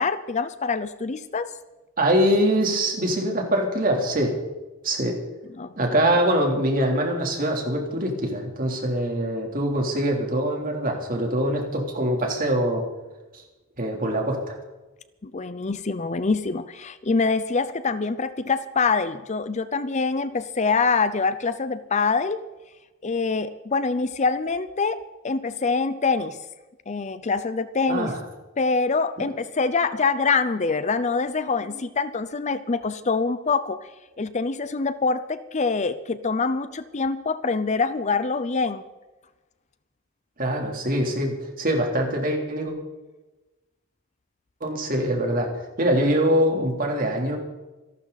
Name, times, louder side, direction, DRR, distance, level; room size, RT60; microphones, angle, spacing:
voice 1, 0.0-1.6 5.6-5.7 15.2-22.5 23.0-26.4 26.9-28.1 28.6-33.8 34.2-38.8, left 4 dB, 35° left, 13 dB, 0.6 m, -25 dB
voice 2, 2.0-4.3 4.8-5.2 5.8-12.8 13.8-14.6 27.9-28.2 31.6-31.8 40.4-42.7 44.6-47.4, right 1 dB, 40° right, 1 dB, 3.3 m, -23 dB
26.5 x 12.0 x 4.1 m, 1.1 s
head